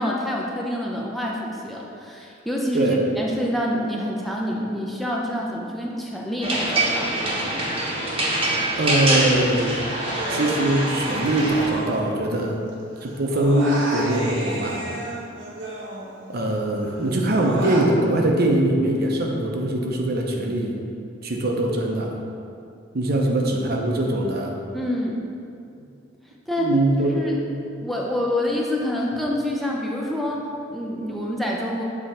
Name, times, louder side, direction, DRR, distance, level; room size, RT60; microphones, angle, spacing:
voice 1, 0.0-7.1 24.7-25.2 26.5-26.7 27.0-27.4 27.8-31.8, left 1 dB, ahead, -3 dB, 0.6 m, -27 dB
sound 1, 6.4-11.7, right 1 dB, 30° right, 1.0 m, -24 dB
voice 2, 8.8-9.8 10.3-12.6 13.0-14.9 16.3-20.8 21.2-22.1 22.9-24.6 26.6-27.2, right 1 dB, 55° right, 1 dB, 0.7 m, -22 dB
Human voice, 10.0-12.7 13.0-16.5 16.8-17.9, right 1 dB, 70° right, 1.0 m, -32 dB
7.2 x 3.8 x 4.3 m, 2.5 s
head